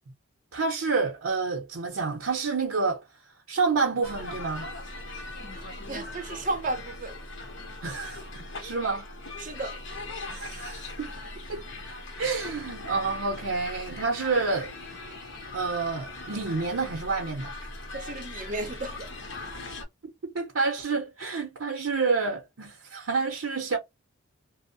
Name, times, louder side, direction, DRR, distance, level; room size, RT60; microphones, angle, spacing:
voice 1, 0.5-3.0 3.5-4.7 7.8-9.1 10.3-11.1 11.5-11.6 12.2-14.7 15.5-17.5 20.3-23.8, right 4 dB, 80° right, 0.7 m, -28 dB
sound 1, 4.0-19.8, left 2 dB, 60° left, 0.8 m, -40 dB
voice 2, 5.8-7.2 9.4-9.8 17.9-19.1, right 2 dB, 40° right, 0.7 m, -33 dB
2.6 x 2.0 x 2.5 m
head